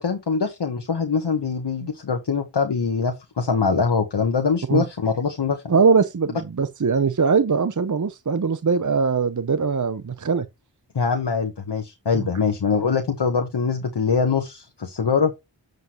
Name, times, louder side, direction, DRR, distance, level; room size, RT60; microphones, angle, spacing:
voice 1, 0.0-5.6 10.9-15.3, left 5 dB, 60° left, 1.2 m, -23 dB
voice 2, 5.7-10.5 12.1-12.3, right 5 dB, 40° right, 0.7 m, -21 dB
8.0 x 7.7 x 3.0 m
wide cardioid pair, 45°, 45 cm